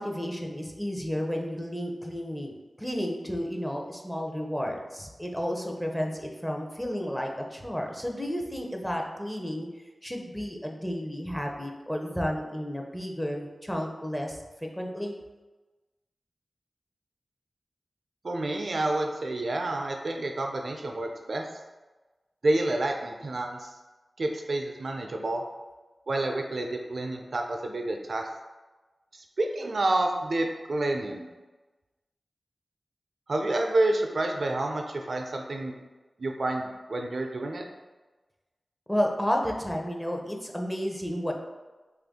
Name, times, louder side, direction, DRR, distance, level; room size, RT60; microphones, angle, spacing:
voice 1, 0.0-9.7 10.0-14.4 14.8-15.1 38.9-41.3, equal, 10° left, 1 dB, 0.6 m, -32 dB
voice 2, 18.2-21.4 22.4-23.7 24.2-25.4 26.1-28.3 29.1-31.3 33.3-35.8 36.2-37.6, right 2 dB, 70° right, 2 dB, 0.3 m, -29 dB
3.4 x 2.5 x 3.5 m, 1.2 s
cardioid pair, 45°, 0 cm